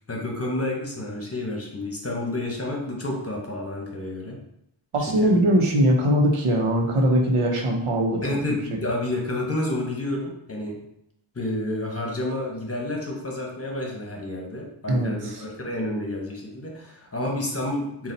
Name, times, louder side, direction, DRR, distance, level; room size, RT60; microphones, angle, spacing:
voice 1, 0.1-4.4 5.2-5.3 8.2-10.8 11.3-18.1, left 1 dB, 30° left, 0 dB, 1.1 m, -30 dB
voice 2, 4.9-8.2 14.9-15.4, equal, 90° right, 1 dB, 0.8 m, -21 dB
4.0 x 2.4 x 4.0 m, 0.79 s
wide cardioid pair, 60°, 49 cm